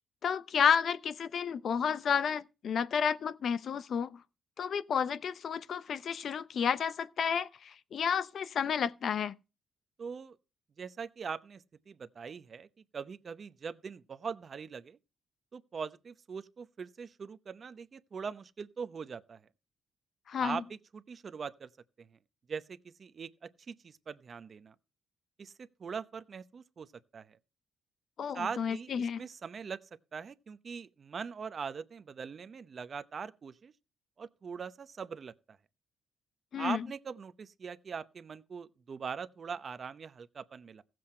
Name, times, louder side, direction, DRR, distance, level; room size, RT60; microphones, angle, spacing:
voice 1, 0.2-4.2 4.6-9.4 20.3-20.6 28.2-29.2 36.5-36.9, left 7 dB, 55° left, 0.6 m, -31 dB
voice 2, 10.0-10.4 10.8-12.7 12.9-15.0 15.5-19.4 20.4-21.7 22.0-22.1 22.5-24.7 25.4-26.9 27.1-27.4 28.3-29.8 30.1-33.7 34.2-35.3 36.6-40.8, right 6 dB, 45° right, 0.7 m, -41 dB
15.0 x 7.7 x 4.3 m
cardioid pair, 90°, 0 cm